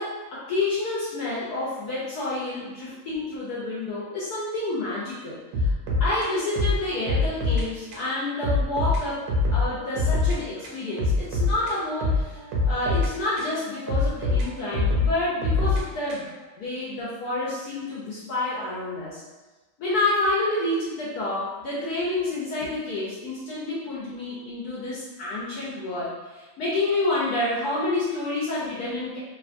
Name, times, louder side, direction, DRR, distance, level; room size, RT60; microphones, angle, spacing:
voice 1, 0.0-5.7 6.0-9.2 9.5-16.3 16.6-19.2 19.8-29.2, left 2 dB, 75° left, -7 dB, 1.1 m, -29 dB
sound 1, 5.5-7.7 7.9-8.1 8.4-10.4 10.6-13.5 13.9-16.4, left 3 dB, 75° right, 1.1 m, -24 dB
2.9 x 2.2 x 2.4 m, 1.2 s
omnidirectional pair, 1.7 m